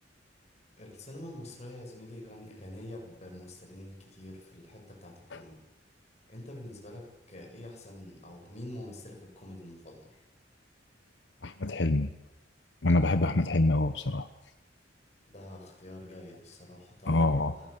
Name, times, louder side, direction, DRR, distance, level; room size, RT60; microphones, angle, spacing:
voice 1, 0.8-5.5 6.3-10.2 15.3-17.2 17.5-17.7, left 1 dB, 40° left, 1 dB, 7.9 m, -46 dB
voice 2, 11.4-12.1 12.8-14.3 17.1-17.7, left 2 dB, 75° left, 10 dB, 1.0 m, -26 dB
28.5 x 18.0 x 8.6 m, 1.0 s
head